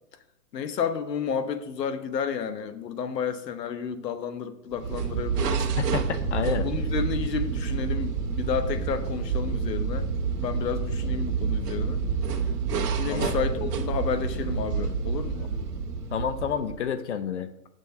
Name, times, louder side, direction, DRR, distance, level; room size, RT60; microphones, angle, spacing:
voice 1, 0.5-5.7 6.6-10.1 10.4-12.0 13.0-15.5, left 7 dB, 85° left, 10 dB, 1.0 m, -31 dB
sound 1, 4.7-16.9, right 5 dB, 75° right, 1.4 m, -28 dB
voice 2, 5.8-6.7 13.1-13.3 16.1-17.5, left 7 dB, 50° left, 12 dB, 0.6 m, -29 dB
6.2 x 4.3 x 6.5 m, 0.87 s
hypercardioid pair, 165°, 48 cm